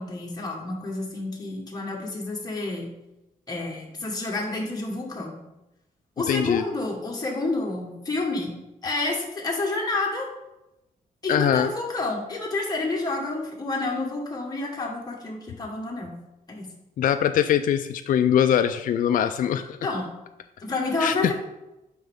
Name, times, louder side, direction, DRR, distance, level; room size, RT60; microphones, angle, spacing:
voice 1, 0.0-2.9 3.5-5.4 6.2-10.3 11.2-16.2 16.5-16.7 19.8-20.1 20.6-21.3, left 2 dB, 25° left, -2 dB, 1.5 m, -29 dB
voice 2, 6.3-6.6 11.3-11.7 17.0-19.8 21.0-21.3, left 9 dB, 65° left, 9 dB, 0.4 m, -22 dB
7.5 x 5.3 x 3.6 m, 0.94 s
cardioid pair, 100°, 15 cm